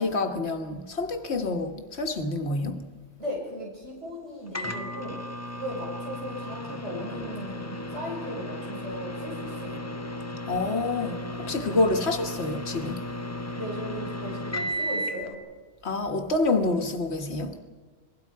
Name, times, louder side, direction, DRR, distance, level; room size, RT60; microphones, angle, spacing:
voice 1, 0.0-2.8 10.5-13.0 15.8-17.6, left 2 dB, 65° left, 1.9 m, -27 dB
voice 2, 3.2-5.2 5.5-9.9 13.6-15.4, equal, 80° right, 6.2 m, -37 dB
Microwave oven, 4.5-15.3, left 1 dB, 15° left, 0.8 m, -35 dB
29.0 x 21.0 x 4.8 m
omnidirectional pair, 1.2 m